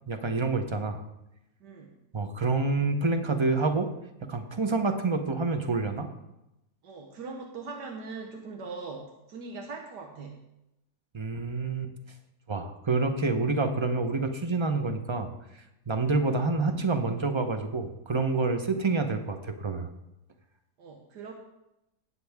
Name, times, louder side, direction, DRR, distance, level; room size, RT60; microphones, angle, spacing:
voice 1, 0.1-1.0 2.1-3.9 4.3-6.1 11.1-11.9 12.5-15.3 15.9-19.9, right 3 dB, 25° right, 7 dB, 0.6 m, -27 dB
voice 2, 1.6-1.9 6.8-10.4 20.8-21.3, right 4 dB, 85° right, 2 dB, 1.7 m, -41 dB
18.0 x 7.7 x 3.6 m, 0.89 s
omnidirectional pair, 1.7 m